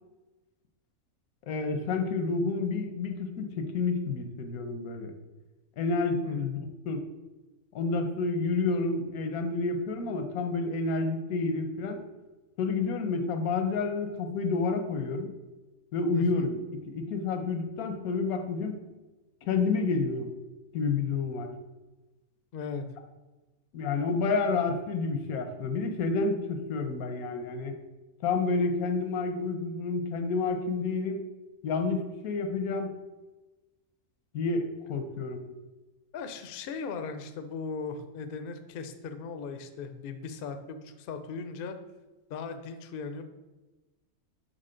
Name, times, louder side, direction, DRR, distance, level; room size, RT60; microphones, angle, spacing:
voice 1, 1.5-5.1 5.8-6.6 6.8-7.0 7.7-12.0 12.6-15.3 15.9-18.8 19.4-20.3 20.7-21.5 23.7-27.7 28.2-31.2 31.6-32.9 34.3-35.4, left 4 dB, 85° left, 6 dB, 1.2 m, -29 dB
voice 2, 16.1-16.5 22.5-22.9 36.1-41.8 42.3-43.2, left 5 dB, 65° left, 8 dB, 0.5 m, -38 dB
6.6 x 4.0 x 3.8 m, 1.1 s
omnidirectional pair, 1.5 m